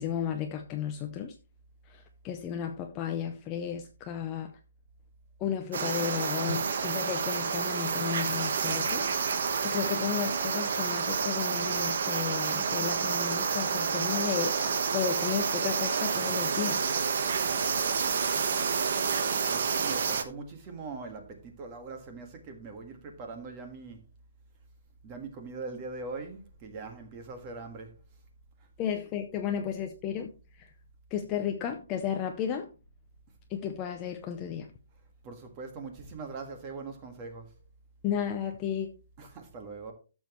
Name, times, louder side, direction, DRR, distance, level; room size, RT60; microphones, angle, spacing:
voice 1, 0.0-1.3 1.9-4.6 5.4-9.1 9.6-14.6 14.9-16.9 28.8-30.3 30.6-30.7 31.1-32.7 33.5-34.7 38.0-38.9, left 8 dB, 15° left, 0.6 m, -33 dB
sound 1, 5.7-20.2, right 6 dB, 45° right, 1.1 m, -29 dB
voice 2, 17.4-18.4 18.8-18.9 19.5-24.0 25.0-27.9 35.2-37.5 39.2-39.9, right 4 dB, 15° right, 1.6 m, -42 dB
13.0 x 7.1 x 3.0 m
hypercardioid pair, 180°, 0 cm